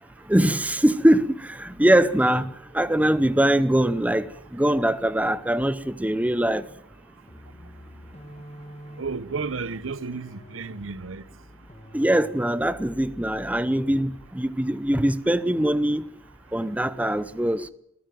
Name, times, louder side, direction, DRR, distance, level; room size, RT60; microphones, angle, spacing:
voice 1, 0.3-1.2 1.6-2.4 2.7-4.3 4.5-6.6 11.9-16.0 16.5-17.7, right 1 dB, 5° right, 0.7 m, -22 dB
sound 1, 7.3-14.4, equal, 35° left, 2.0 m, -47 dB
voice 2, 9.0-11.2, right 4 dB, 85° right, 0.9 m, -32 dB
21.5 x 14.0 x 9.2 m
head